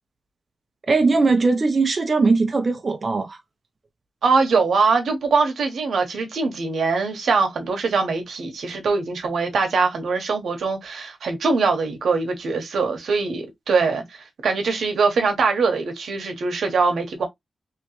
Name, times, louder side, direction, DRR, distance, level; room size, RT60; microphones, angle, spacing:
voice 1, 0.9-3.4, right 3 dB, 45° right, 0.6 m, -19 dB
voice 2, 4.2-17.3, right 4 dB, 90° right, 1.0 m, -22 dB
3.1 x 3.0 x 2.9 m
wide cardioid pair, 95°, 0 cm